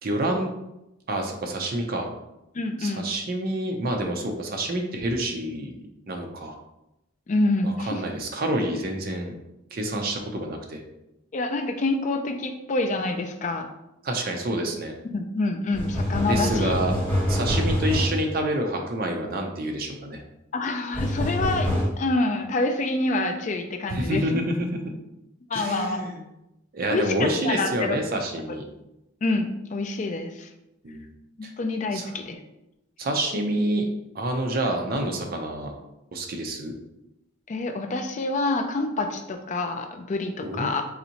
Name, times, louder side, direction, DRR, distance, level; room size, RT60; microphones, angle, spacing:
voice 1, 0.0-0.5 1.1-2.1 2.8-6.5 7.6-9.3 9.7-10.8 14.0-14.9 16.3-16.9 17.3-20.2 23.9-24.9 25.5-26.2 26.7-28.7 30.8-31.1 31.4-31.5 31.9-32.1 33.0-33.9 34.1-35.7 36.1-36.7 40.4-40.7, right 1 dB, 45° right, 2 dB, 0.5 m, -28 dB
voice 2, 2.5-3.1 7.3-8.0 11.3-13.7 15.1-16.7 20.5-21.7 22.0-24.2 25.5-26.0 26.9-28.0 29.2-30.5 31.4-32.4 37.5-40.9, left 2 dB, 35° left, 6 dB, 0.3 m, -27 dB
sound 1, 15.7-18.3 20.9-21.9, equal, 10° left, 1.2 m, -25 dB
4.0 x 2.6 x 2.8 m, 0.90 s
head